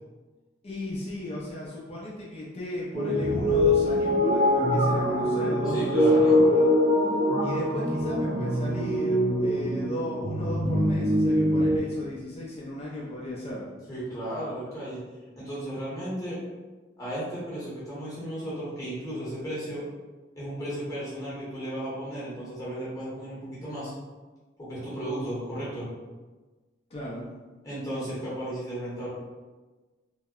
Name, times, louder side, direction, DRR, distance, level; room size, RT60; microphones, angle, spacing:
voice 1, 0.6-6.7 7.4-13.6 26.9-27.3, left 1 dB, 35° left, -5 dB, 0.4 m, -35 dB
sound 1, 2.9-11.8, left 1 dB, 35° right, 0.4 m, -23 dB
voice 2, 5.7-6.4 13.9-15.0 15.3-16.4 17.0-19.8 20.4-23.9 24.6-25.9 27.6-29.1, right 1 dB, 20° left, -9 dB, 0.9 m, -34 dB
2.7 x 2.0 x 2.3 m, 1.3 s
head